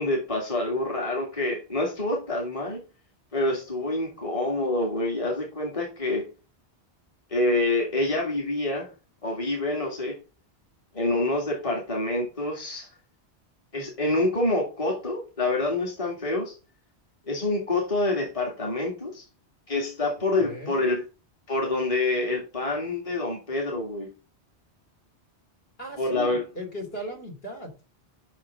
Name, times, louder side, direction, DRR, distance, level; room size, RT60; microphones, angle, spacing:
voice 1, 0.0-2.8 3.3-6.3 7.3-8.9 9.2-10.2 10.9-12.9 13.7-16.6 17.3-19.3 19.7-21.0 21.5-24.1 26.0-26.4, left 2 dB, 30° left, 2.3 m, -27 dB
voice 2, 20.4-20.9 25.8-27.7, equal, 60° left, 3.3 m, -37 dB
6.3 x 6.2 x 6.6 m
omnidirectional pair, 1.1 m